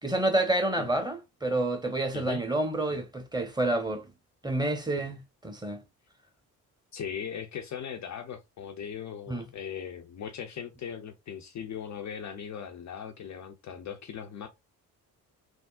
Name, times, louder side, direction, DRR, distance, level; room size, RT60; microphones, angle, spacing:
voice 1, 0.0-4.1 4.4-5.8 9.3-9.5, right 2 dB, 10° right, 0.9 m, -29 dB
voice 2, 6.9-14.5, left 8 dB, 40° left, 0.5 m, -39 dB
3.6 x 2.1 x 2.4 m
hypercardioid pair, 45°, 47 cm